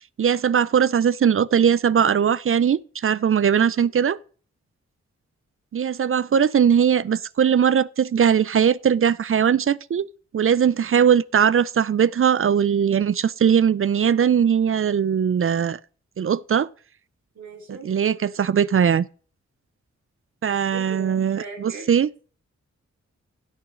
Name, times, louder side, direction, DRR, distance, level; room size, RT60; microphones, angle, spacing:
voice 1, 0.2-4.2 5.7-10.1 10.3-15.8 16.2-16.7 17.7-19.1 20.4-22.1, right 8 dB, 45° right, 0.5 m, -20 dB
voice 2, 17.3-17.9 20.7-21.9, right 4 dB, 75° right, 4.6 m, -39 dB
16.5 x 6.2 x 3.8 m
cardioid pair, 60°, 29 cm